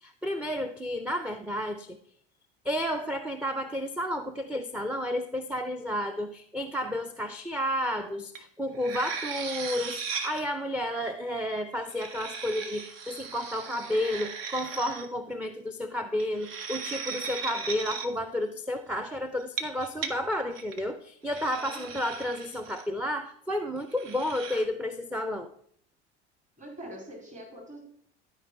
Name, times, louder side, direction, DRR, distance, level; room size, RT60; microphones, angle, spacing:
voice 1, 0.0-2.0 2.6-25.5, left 1 dB, 5° right, 9 dB, 0.5 m, -31 dB
sound 1, 8.4-8.5 8.8-10.4 11.8-15.1 16.2-18.1 19.4-20.1 20.5-20.8 21.3-22.8 23.9-24.6, right 5 dB, 65° right, 1.0 m, -37 dB
voice 2, 21.6-22.1 26.6-27.8, right 1 dB, 20° right, 1 dB, 2.4 m, -43 dB
13.0 x 4.6 x 4.3 m, 0.65 s
hypercardioid pair, 70°, 32 cm